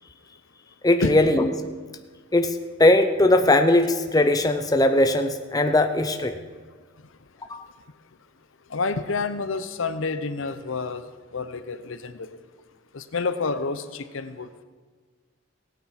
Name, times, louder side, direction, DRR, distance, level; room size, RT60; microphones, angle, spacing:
voice 1, 0.8-1.5 2.3-2.5 2.8-6.3 7.5-7.6, left 1 dB, 15° left, 7 dB, 0.6 m, -19 dB
voice 2, 8.7-11.1 11.3-12.4 12.9-14.6, left 4 dB, 65° left, 12 dB, 0.7 m, -29 dB
16.5 x 9.1 x 5.8 m, 1.5 s
head